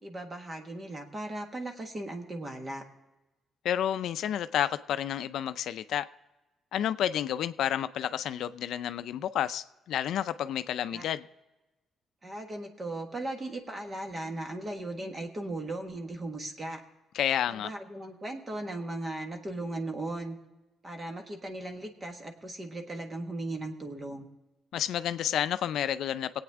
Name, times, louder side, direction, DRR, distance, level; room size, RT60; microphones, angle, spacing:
voice 1, 0.0-2.8 10.9-11.0 12.2-16.8 17.5-20.4 20.8-24.3, right 2 dB, 30° right, 1.5 m, -37 dB
voice 2, 3.6-6.1 6.7-11.2 17.1-17.7 24.7-26.4, left 10 dB, 75° left, 0.4 m, -30 dB
20.0 x 8.7 x 3.6 m
cardioid pair, 90°, 0 cm